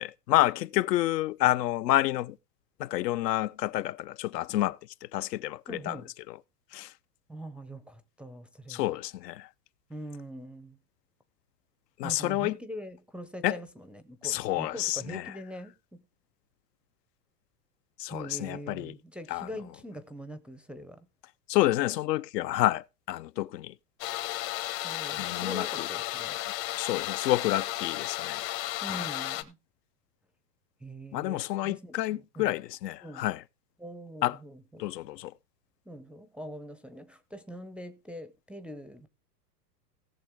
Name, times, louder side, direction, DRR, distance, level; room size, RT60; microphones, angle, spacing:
voice 1, 0.0-2.4 2.8-6.0 6.3-6.4 6.7-6.9 8.7-9.5 12.0-12.6 13.4-13.6 14.2-15.2 18.0-18.9 19.3-19.5 21.5-23.7 25.2-25.9 26.7-28.5 28.8-29.0 31.1-33.4 34.2-34.4 34.8-35.3, left 15 dB, 75° left, 0.7 m, -29 dB
voice 2, 5.7-6.1 7.3-8.9 9.9-10.8 12.0-16.0 18.1-21.1 24.8-26.4 28.8-29.6 30.8-32.5 33.0-33.3 33.8-34.9 35.9-39.1, equal, ahead, 0.5 m, -43 dB
sound 1, 24.0-29.4, left 16 dB, 55° left, 1.4 m, -34 dB
17.5 x 6.5 x 3.5 m
hypercardioid pair, 120°, 49 cm